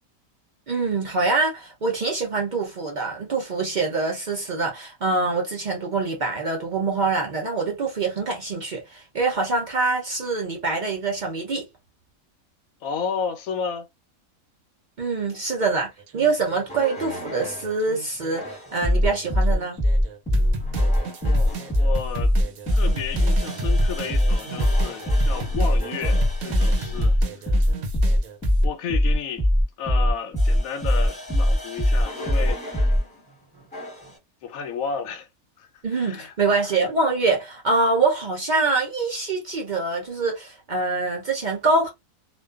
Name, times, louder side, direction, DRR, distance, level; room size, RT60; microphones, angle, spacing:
voice 1, 0.7-11.7 15.0-19.8 35.8-41.9, right 3 dB, 55° right, 0.5 m, -25 dB
voice 2, 12.8-13.8 15.3-15.4 21.2-22.3 22.7-27.1 27.5-27.6 28.6-29.5 29.8-32.6 34.4-35.3 35.6-36.3, left 6 dB, 80° left, 1.0 m, -32 dB
sound 1, 16.0-18.6 19.0-28.6, right 1 dB, 80° right, 1.1 m, -34 dB
sound 2, 16.7-17.7 18.4-33.0 33.7-34.1, equal, 5° left, 1.0 m, -22 dB
2.4 x 2.2 x 2.3 m
omnidirectional pair, 1.5 m